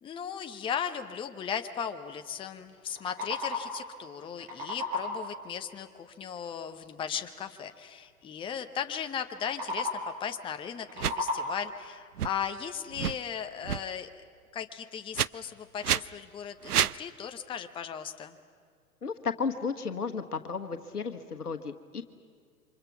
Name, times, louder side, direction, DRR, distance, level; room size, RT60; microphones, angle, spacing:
voice 1, 0.0-14.2 14.5-18.3, left 8 dB, 10° left, 7 dB, 0.8 m, -37 dB
sound 1, 2.8-3.9 4.2-5.4 9.3-10.2 10.7-11.8, left 2 dB, 45° right, 5.5 m, -35 dB
sound 2, 11.0-11.1 12.2-12.3 12.9-13.2 13.6-13.8 15.1-15.3 15.8-16.0 16.6-17.0, right 10 dB, 80° right, 0.6 m, -28 dB
voice 2, 19.0-22.0, left 5 dB, 80° left, 7 dB, 1.4 m, -33 dB
29.5 x 25.5 x 5.9 m, 2.1 s
figure-of-eight pair, 105°, 45 cm